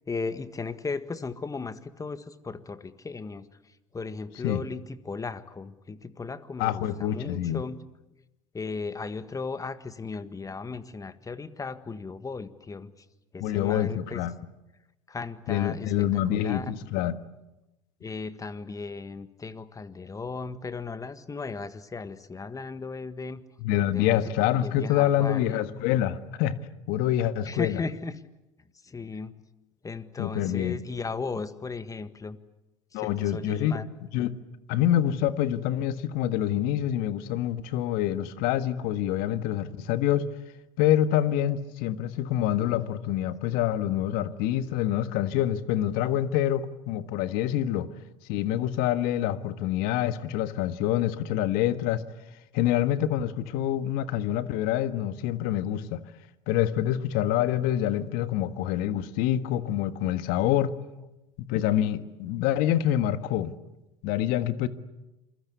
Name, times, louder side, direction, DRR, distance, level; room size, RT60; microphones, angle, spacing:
voice 1, 0.0-7.8 8.5-13.0 13.3-14.2 15.1-16.6 18.0-23.4 23.9-25.6 27.4-28.2 28.8-29.4 29.8-32.4 32.9-33.9, left 4 dB, 20° left, 1.7 m, -36 dB
voice 2, 6.6-7.6 13.4-14.3 15.5-17.1 23.6-26.6 26.9-27.8 30.2-30.8 32.9-34.3 34.7-40.2 40.8-47.9 48.3-52.0 52.5-56.0 56.5-60.7 61.4-63.5 64.0-64.7, left 11 dB, 60° left, 1.6 m, -26 dB
27.5 x 22.0 x 8.3 m
hypercardioid pair, 75°, 17 cm